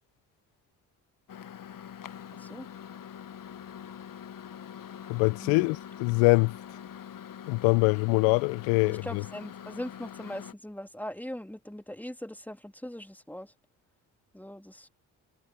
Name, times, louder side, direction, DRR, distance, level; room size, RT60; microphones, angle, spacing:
Microwave oven, 1.3-10.5, left 9 dB, 50° left, 1.1 m, -44 dB
voice 1, 5.1-6.5 7.5-9.2, left 29 dB, 85° left, 0.6 m, -24 dB
voice 2, 8.8-13.5 14.3-14.9, equal, 5° left, 3.0 m, -40 dB
hypercardioid pair, 45°, 43 cm